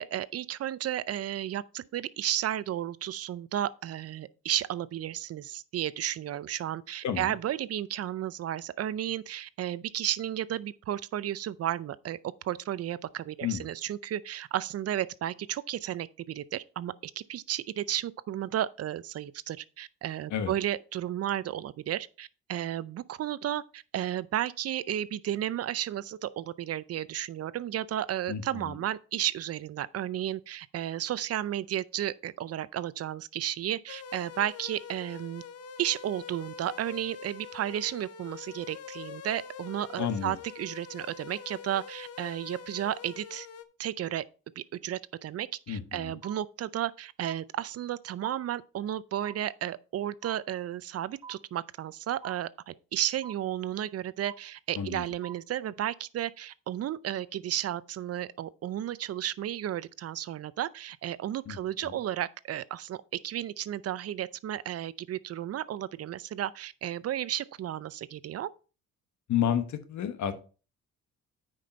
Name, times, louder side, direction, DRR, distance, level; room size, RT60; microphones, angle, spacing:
voice 1, 0.0-12.2 12.4-35.4 35.8-43.5 43.8-44.2 44.6-68.5, right 11 dB, 55° right, 0.5 m, -33 dB
voice 2, 7.0-7.3 13.4-13.7 20.3-20.5 28.3-28.7 40.0-40.3 45.7-46.2 54.7-55.0 61.5-61.6 61.8-62.0 69.3-70.3, left 9 dB, 70° left, 1.2 m, -31 dB
sound 1, 33.9-43.6, left 7 dB, 55° left, 0.8 m, -45 dB
sound 2, 46.2-46.3 47.2-47.3 48.2-48.3 49.2-49.3 50.2-50.3 51.2-51.3 52.2-52.3 53.2-53.3 54.2-54.3 55.2-55.3, right 8 dB, 15° right, 2.4 m, -43 dB
8.9 x 5.2 x 4.3 m
cardioid pair, 90°, 30 cm